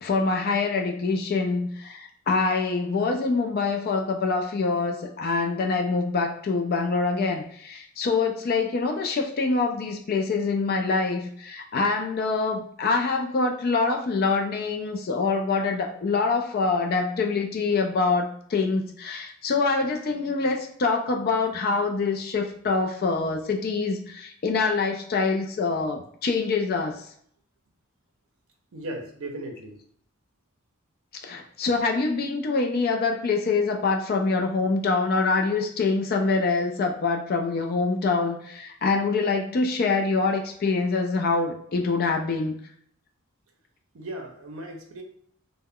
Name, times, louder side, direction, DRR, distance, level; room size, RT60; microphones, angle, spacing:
voice 1, 0.0-27.0 31.2-42.5, left 4 dB, 45° left, 3 dB, 0.3 m, -25 dB
voice 2, 28.7-29.8 43.9-45.0, right 1 dB, 70° right, 3 dB, 0.5 m, -37 dB
2.2 x 2.1 x 3.5 m, 0.66 s
head